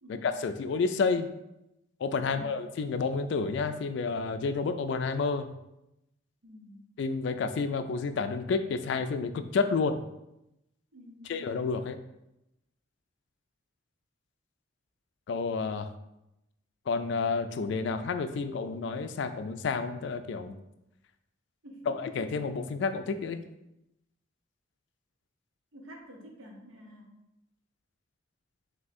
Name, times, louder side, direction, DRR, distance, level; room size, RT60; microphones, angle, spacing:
voice 1, 0.1-1.3 2.0-5.5 7.0-9.9 11.3-12.0 15.3-15.9 16.9-20.6 21.9-23.4, left 4 dB, 65° left, 10 dB, 0.3 m, -30 dB
voice 2, 2.3-2.6 6.4-6.8 10.9-11.6 21.6-21.9 25.7-27.0, equal, 85° right, 1 dB, 0.9 m, -49 dB
3.5 x 2.7 x 4.1 m, 0.88 s
head